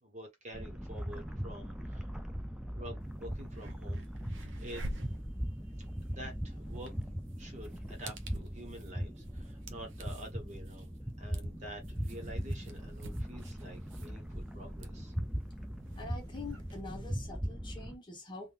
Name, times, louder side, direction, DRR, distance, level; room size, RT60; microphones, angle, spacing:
voice 1, 0.0-2.1 2.7-5.1 5.7-6.9 7.4-15.1, right 1 dB, 35° right, 1.2 m, -48 dB
sound 1, 0.5-18.0, equal, 5° right, 0.3 m, -40 dB
sound 2, 3.0-3.1 3.4-16.8, right 1 dB, 65° right, 0.7 m, -49 dB
voice 2, 16.0-18.5, left 3 dB, 25° left, 1.1 m, -45 dB
3.5 x 2.5 x 2.4 m
head